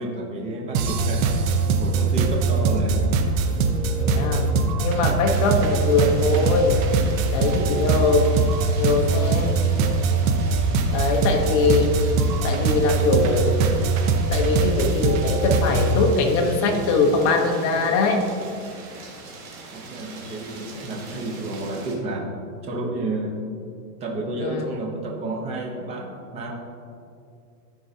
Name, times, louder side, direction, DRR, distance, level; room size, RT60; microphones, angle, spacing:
voice 1, 0.0-1.3 1.8-3.1 19.7-22.3 22.6-23.5 24.0-26.5, right 1 dB, 15° right, 0 dB, 0.6 m, -30 dB
sound 1, 0.7-16.0, right 4 dB, 55° right, 0.8 m, -22 dB
voice 2, 4.0-6.9 7.3-8.3 8.8-9.7 10.9-12.0 12.4-13.6 14.3-18.3 24.4-24.6, left 3 dB, 30° left, 3 dB, 0.7 m, -22 dB
sound 2, 5.3-21.9, right 3 dB, 40° right, 1.7 m, -41 dB
13.5 x 4.6 x 2.7 m, 2.4 s
supercardioid pair, 155°, 48 cm